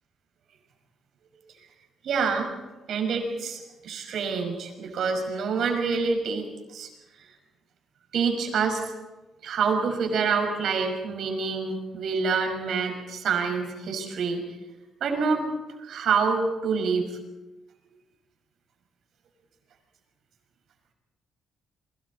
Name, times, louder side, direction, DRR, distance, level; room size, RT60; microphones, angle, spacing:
voice 1, 2.0-2.5 2.9-6.5 6.7-6.9 8.1-8.8 9.4-14.4 15.0-15.4 15.8-17.2, right 5 dB, 70° right, 4 dB, 5.6 m, -26 dB
29.5 x 23.0 x 4.3 m, 1.1 s
cardioid pair, 90°, 0 cm